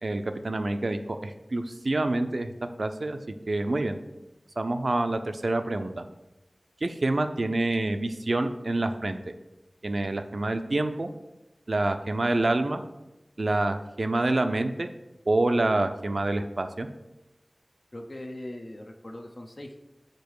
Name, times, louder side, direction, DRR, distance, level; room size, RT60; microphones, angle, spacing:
voice 1, 0.0-2.5 2.8-3.2 3.5-4.0 4.6-6.1 6.8-9.2 9.8-11.1 11.7-12.8 13.4-14.9 15.3-16.9, right 2 dB, 75° right, 8 dB, 0.5 m, -27 dB
voice 2, 17.9-19.8, left 1 dB, 50° left, 2 dB, 0.6 m, -40 dB
5.2 x 4.6 x 4.6 m, 0.97 s
wide cardioid pair, 40°, 0 cm